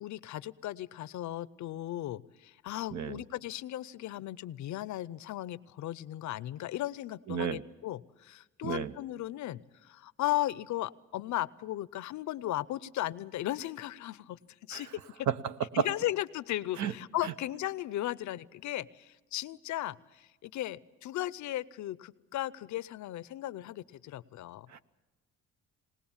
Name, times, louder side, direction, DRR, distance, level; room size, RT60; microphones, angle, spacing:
voice 1, 0.0-14.4 14.7-14.9 15.1-15.3 15.7-24.7, left 14 dB, 70° left, 19 dB, 0.6 m, -36 dB
voice 2, 7.3-7.6 8.6-8.9 14.7-14.8 15.3-15.9 16.8-16.9 24.7-24.8, right 8 dB, 70° right, 12 dB, 0.9 m, -32 dB
20.0 x 19.5 x 7.2 m, 1.1 s
cardioid pair, 90°, 30 cm